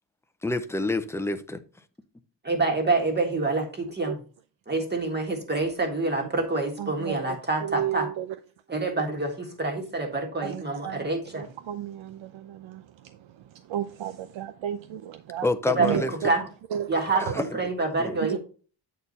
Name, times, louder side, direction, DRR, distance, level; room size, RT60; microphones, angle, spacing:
voice 1, 0.4-1.6 15.4-16.1 17.3-17.6 18.0-18.2, left 2 dB, 5° left, 0.4 m, -27 dB
voice 2, 2.4-4.2 4.7-8.1 8.7-11.5 15.7-16.4 16.9-18.4, right 3 dB, 20° right, 1.7 m, -27 dB
voice 3, 6.8-8.3 10.4-11.1 11.3-13.2 13.7-15.5 15.8-16.3 16.7-17.4 18.2-18.4, right 10 dB, 85° right, 0.6 m, -33 dB
8.3 x 4.4 x 4.0 m
wide cardioid pair, 155°, 46 cm